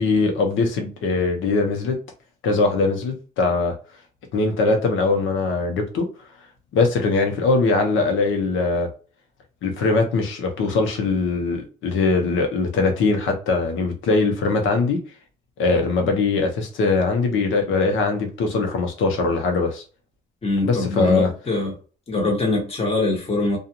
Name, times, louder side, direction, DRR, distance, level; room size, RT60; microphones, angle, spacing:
voice 1, 0.0-2.0 2.4-3.7 4.3-6.0 6.7-8.9 9.6-15.0 15.6-19.8 20.6-21.3, left 3 dB, 80° left, 0.9 m, -21 dB
voice 2, 20.4-21.7 22.1-23.6, left 2 dB, 30° left, 1.3 m, -23 dB
2.4 x 2.4 x 2.8 m
cardioid pair, 90°, 20 cm